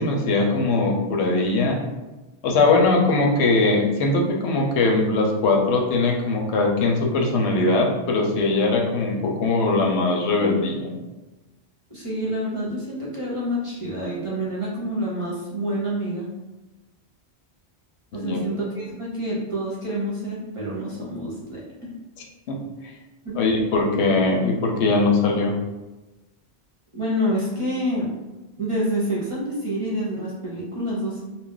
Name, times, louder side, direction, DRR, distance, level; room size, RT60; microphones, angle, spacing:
voice 1, 0.0-1.8 2.4-11.0 18.1-18.4 22.5-22.6 23.4-25.5, left 3 dB, 85° left, 1 dB, 0.9 m, -21 dB
voice 2, 11.9-16.3 18.1-21.9 23.2-23.4 26.9-28.1 28.6-31.2, equal, 35° right, -6 dB, 0.7 m, -27 dB
2.3 x 2.1 x 3.7 m, 1.1 s
omnidirectional pair, 1.1 m